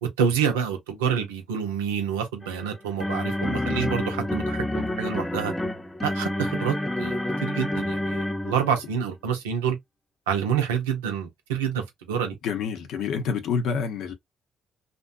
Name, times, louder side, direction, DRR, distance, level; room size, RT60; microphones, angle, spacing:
voice 1, 0.0-5.5 6.0-9.8 10.3-12.4, right 7 dB, 90° right, 0.6 m, -28 dB
sound 1, 2.4-8.9, left 1 dB, 15° left, 0.6 m, -28 dB
voice 2, 12.4-14.1, left 6 dB, 70° left, 0.7 m, -27 dB
2.6 x 2.2 x 2.5 m
hypercardioid pair, 50°, 0 cm